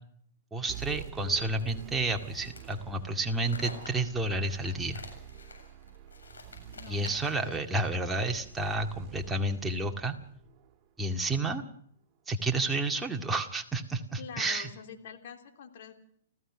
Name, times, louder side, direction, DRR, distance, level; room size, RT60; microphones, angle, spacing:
voice 1, 0.5-5.0 6.9-10.1 11.0-11.6 12.3-14.7, right 2 dB, 10° right, 3 dB, 2.1 m, -30 dB
sound 1, 0.7-11.5, right 10 dB, 35° right, 2.8 m, -47 dB
sound 2, 1.6-7.5, left 4 dB, 85° left, 7.5 m, -48 dB
voice 2, 6.7-7.5 14.2-15.9, left 7 dB, 60° left, 5 dB, 3.3 m, -46 dB
30.0 x 15.5 x 6.2 m, 0.66 s
hypercardioid pair, 125°, 0 cm